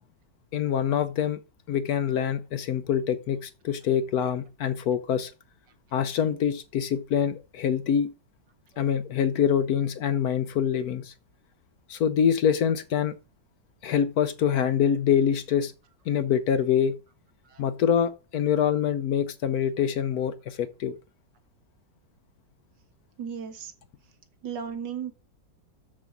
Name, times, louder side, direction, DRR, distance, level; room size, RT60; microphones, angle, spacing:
voice 1, 0.5-1.4 1.7-5.3 5.9-8.1 8.8-11.1 11.9-13.1 13.8-15.7 16.1-17.0 17.6-21.0, left 8 dB, 65° left, 1.0 m, -25 dB
voice 2, 23.2-23.7 24.4-25.1, right 7 dB, 75° right, 1.9 m, -35 dB
7.0 x 6.8 x 5.9 m
omnidirectional pair, 1.9 m